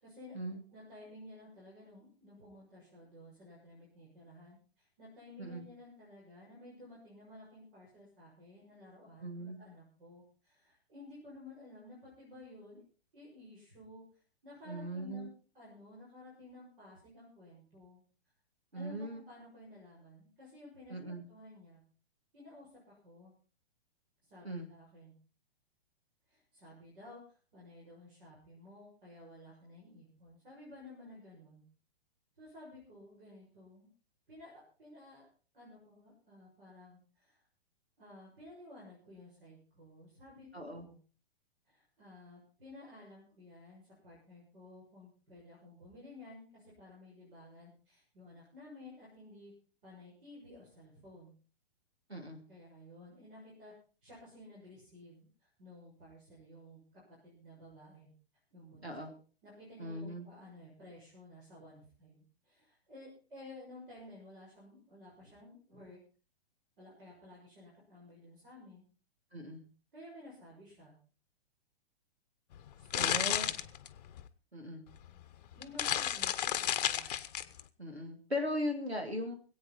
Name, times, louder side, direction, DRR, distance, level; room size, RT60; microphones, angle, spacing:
voice 1, 0.0-0.4 0.7-12.8 13.1-15.3 15.5-18.0 18.7-21.8 22.3-23.3 24.2-25.1 26.3-31.6 32.4-33.9 34.3-35.3 35.5-37.4 38.0-40.5 40.8-41.0 41.6-49.5 49.8-51.3 52.5-53.7 54.0-58.1 58.5-59.1 59.4-66.0 66.8-68.8 69.9-70.9 72.8-73.6 75.5-77.1, left 1 dB, 60° right, -5 dB, 6.8 m, -54 dB
voice 2, 9.2-9.6 14.7-15.3 18.7-19.2 20.9-21.2 24.4-24.7 40.5-40.9 52.1-52.4 58.8-59.1 59.8-60.3 69.3-69.6 73.0-73.5 74.5-74.8 77.8-79.4, equal, 85° right, 4 dB, 2.9 m, -38 dB
sound 1, 72.5-74.3 75.0-75.1 75.5-77.6, left 11 dB, 40° left, 0.9 m, -32 dB
24.0 x 8.6 x 4.2 m, 0.38 s
figure-of-eight pair, 115°, 31 cm